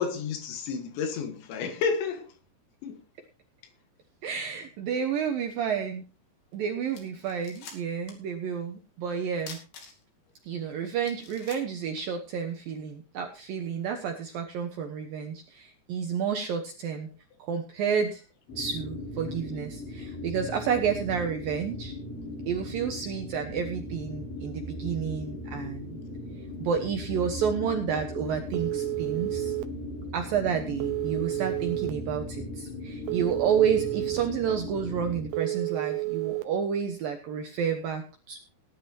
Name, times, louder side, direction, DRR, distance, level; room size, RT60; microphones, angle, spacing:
voice 1, 0.0-2.3 2.8-3.0, left 5 dB, 75° left, 3.7 m, -30 dB
voice 2, 4.2-6.0 6.5-9.6 10.4-17.1 17.4-18.2 18.6-21.9 22.5-26.0 26.6-29.5 30.1-38.4, right 7 dB, 70° right, 2.2 m, -30 dB
sound 1, 6.5-6.6 6.9-8.3 8.6-8.7 9.4-10.3 10.7-10.8 11.0-12.6, left 5 dB, 60° left, 4.2 m, -46 dB
sound 2, 18.5-35.3, left 1 dB, 35° left, 5.1 m, -38 dB
Telephone, 28.5-29.6 30.8-31.9 33.1-34.2 35.3-36.4, right 24 dB, 90° right, 2.0 m, -30 dB
18.5 x 10.5 x 2.9 m
omnidirectional pair, 5.5 m